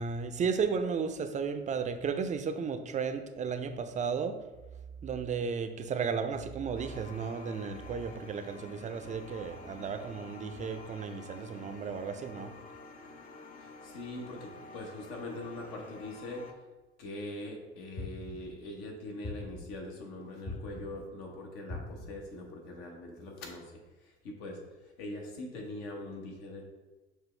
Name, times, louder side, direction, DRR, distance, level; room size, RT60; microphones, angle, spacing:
voice 1, 0.0-4.4 5.0-12.5, right 6 dB, 25° right, 8 dB, 0.4 m, -34 dB
sound 1, 6.8-16.5, left 3 dB, 25° left, 0.5 m, -49 dB
voice 2, 13.6-16.4 17.0-23.7 24.0-26.6, left 1 dB, 75° left, 1 dB, 1.2 m, -42 dB
sound 2, 18.0-18.6 19.2-19.9 20.5-21.1 21.7-22.3, left 2 dB, 45° left, 1.1 m, -42 dB
6.3 x 2.3 x 3.2 m, 1.2 s
hypercardioid pair, 75°, 31 cm